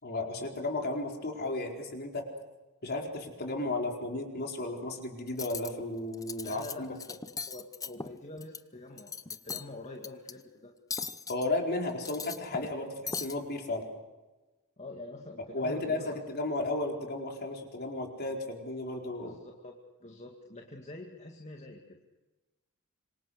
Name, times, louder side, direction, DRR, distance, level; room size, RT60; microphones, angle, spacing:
voice 1, 0.0-2.2 2.8-6.9 11.3-13.8 15.5-19.4, left 2 dB, 50° left, 2 dB, 4.4 m, -34 dB
Cutlery silverware, 5.3-5.7 6.1-6.7 7.0-8.6 8.9-9.7 10.0-10.3 10.9-11.5 11.9-12.8 13.1-13.3, left 5 dB, 15° left, 0.7 m, -39 dB
voice 2, 6.4-7.2 7.5-10.7 14.8-16.2 19.2-19.7 20.0-22.0, left 2 dB, 30° left, 1 dB, 2.2 m, -46 dB
26.5 x 24.5 x 6.6 m, 1.2 s
head